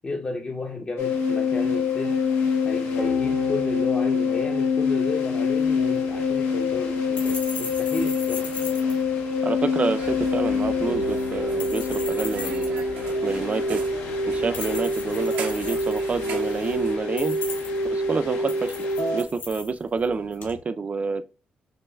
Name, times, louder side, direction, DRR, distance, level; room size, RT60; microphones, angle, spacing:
voice 1, 0.0-2.2 2.6-8.5, left 2 dB, 35° left, 0.6 m, -33 dB
sound 1, 1.0-19.2, left 4 dB, 85° left, 0.6 m, -25 dB
sound 2, 5.5-20.6, left 4 dB, 60° left, 1.2 m, -40 dB
voice 2, 9.4-12.9 13.2-13.8 14.3-17.4 17.9-18.9 19.1-21.2, right 4 dB, 40° right, 0.4 m, -28 dB
sound 3, 9.9-17.0, right 4 dB, 85° right, 0.8 m, -39 dB
6.2 x 2.2 x 2.2 m
supercardioid pair, 60°, 4 cm